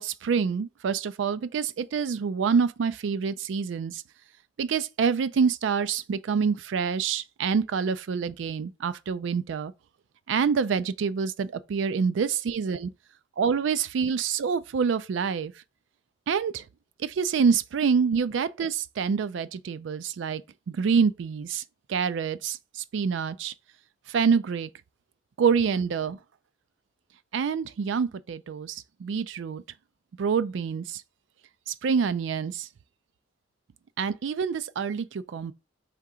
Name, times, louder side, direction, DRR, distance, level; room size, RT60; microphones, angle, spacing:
voice 1, 0.0-4.0 4.6-9.7 10.3-12.9 13.4-15.5 16.3-16.6 17.0-20.4 20.7-21.5 21.9-22.6 22.9-23.5 24.1-24.7 25.4-26.2 27.3-29.6 30.2-31.0 31.7-32.7 34.0-35.5, right 6 dB, 70° right, 0.3 m, -26 dB
3.6 x 2.8 x 4.8 m
head